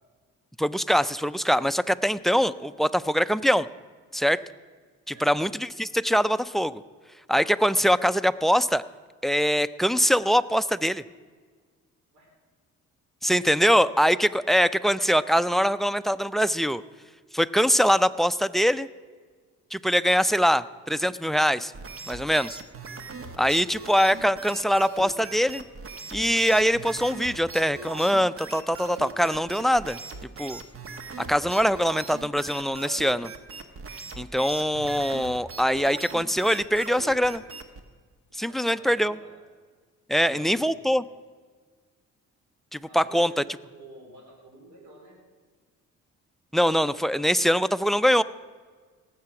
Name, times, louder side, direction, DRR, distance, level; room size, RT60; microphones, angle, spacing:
voice 1, 0.6-3.7 4.1-4.4 5.2-6.8 7.3-8.8 9.2-11.0 13.2-16.8 17.3-18.9 19.7-21.7 22.1-22.6 23.4-25.6 26.1-30.0 30.4-30.6 31.3-33.3 34.2-37.4 38.3-39.1 40.1-41.0 42.7-43.3 46.5-48.2, equal, ahead, 17 dB, 0.3 m, -23 dB
sound 1, 21.7-37.8, right 4 dB, 45° right, 1.2 m, -40 dB
voice 2, 38.5-39.3 40.2-41.1 42.9-45.2, right 2 dB, 65° right, -1 dB, 3.9 m, -50 dB
18.0 x 7.7 x 5.9 m, 1.5 s
cardioid pair, 90°, 30 cm